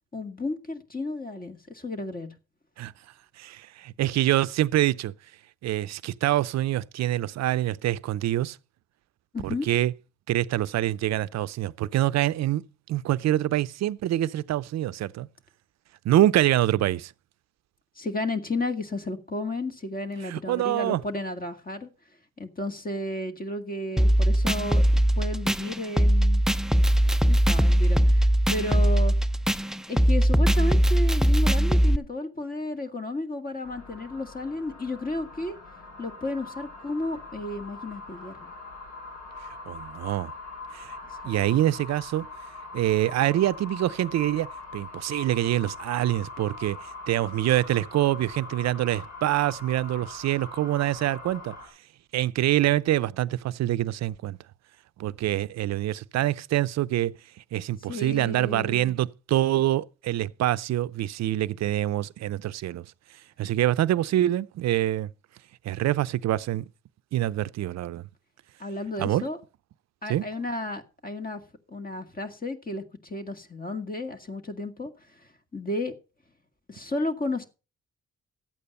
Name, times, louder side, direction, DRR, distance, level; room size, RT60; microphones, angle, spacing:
voice 1, 0.1-2.3 9.3-9.7 18.0-21.9 22.4-24.8 25.2-26.4 27.0-29.1 29.9-35.6 36.0-38.5 41.1-41.2 57.9-59.0 68.6-69.4 70.0-71.4 71.7-74.9 75.5-75.9 76.7-77.4, left 2 dB, 30° left, 2.1 m, -33 dB
voice 2, 3.4-5.1 5.6-8.6 9.4-9.9 10.3-12.6 12.9-15.3 16.0-17.1 20.2-21.0 39.7-40.3 40.7-41.0 41.2-42.3 42.7-46.8 47.1-51.6 52.1-54.4 55.0-57.1 57.5-62.8 63.4-65.1 65.6-66.6 67.1-68.0 69.0-69.2 70.1-70.2, right 14 dB, 65° right, 0.6 m, -25 dB
sound 1, 24.0-32.0, equal, ahead, 0.5 m, -21 dB
sound 2, 33.6-51.7, left 3 dB, 80° left, 4.7 m, -42 dB
12.5 x 8.5 x 5.4 m
supercardioid pair, 50°, 29 cm